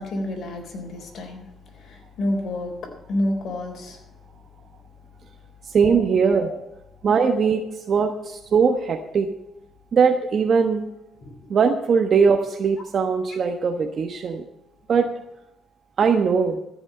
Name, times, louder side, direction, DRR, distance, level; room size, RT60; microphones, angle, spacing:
voice 1, 0.0-1.4 1.7-2.7 3.1-4.0 5.9-6.0 6.4-6.6 7.3-7.4 11.2-11.3, left 1 dB, 60° left, 1 dB, 3.9 m, -29 dB
voice 2, 5.7-6.5 7.0-7.6 7.9-9.3 9.9-10.8 11.5-14.4 14.9-15.1 16.0-16.6, right 5 dB, 55° right, 4 dB, 1.2 m, -20 dB
14.5 x 6.3 x 8.8 m, 0.89 s
cardioid pair, 90°, 0 cm